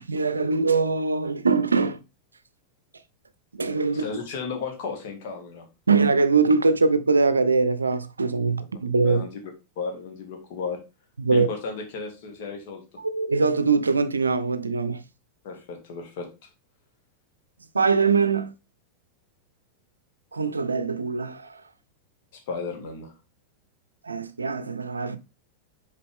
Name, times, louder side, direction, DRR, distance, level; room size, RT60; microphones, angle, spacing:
voice 1, 0.0-2.0 3.5-4.0 5.9-9.2 11.2-11.5 13.0-15.0 17.7-18.5 20.3-21.6 24.0-25.2, right 4 dB, 75° right, 0.5 m, -22 dB
voice 2, 3.8-5.7 9.0-9.3 9.8-10.8 11.3-12.8 15.4-16.5 22.3-23.1, left 4 dB, 50° left, 1.9 m, -34 dB
6.7 x 4.4 x 3.5 m
figure-of-eight pair, 90°, 0 cm